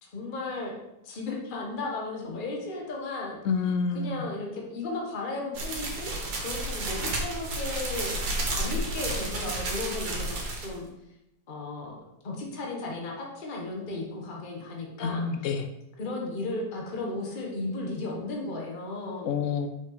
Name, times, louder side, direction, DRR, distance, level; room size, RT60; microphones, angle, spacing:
voice 1, 0.0-0.7 1.0-3.4 3.9-8.2 8.5-10.9 11.5-12.0 12.2-15.2 16.0-19.3, left 2 dB, 35° left, -1 dB, 1.2 m, -35 dB
voice 2, 3.4-4.2 15.0-15.7 19.2-19.7, left 5 dB, 60° left, 6 dB, 0.9 m, -28 dB
sound 1, 5.5-10.7, right 2 dB, 70° right, 1.9 m, -31 dB
5.7 x 5.7 x 4.0 m, 0.87 s
omnidirectional pair, 1.9 m